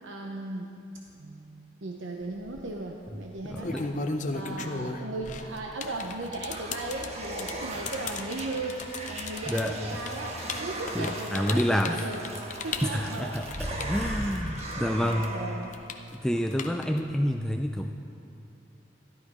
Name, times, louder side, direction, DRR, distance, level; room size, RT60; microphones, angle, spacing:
voice 1, 0.0-0.7 1.2-3.9 4.3-8.8 9.1-12.2 12.6-13.9 14.8-15.7, right 2 dB, 75° right, 1 dB, 0.8 m, -37 dB
sound 1, 2.3-2.6 3.4-14.7 15.0-17.1, left 4 dB, 40° left, 0.6 m, -36 dB
voice 2, 3.4-3.9 9.5-9.8 10.9-12.1 12.8-15.4 16.1-17.9, equal, 5° left, 3 dB, 0.3 m, -28 dB
sound 2, 5.8-15.8, right 1 dB, 35° right, 1.3 m, -38 dB
13.5 x 12.0 x 4.9 m, 2.9 s
head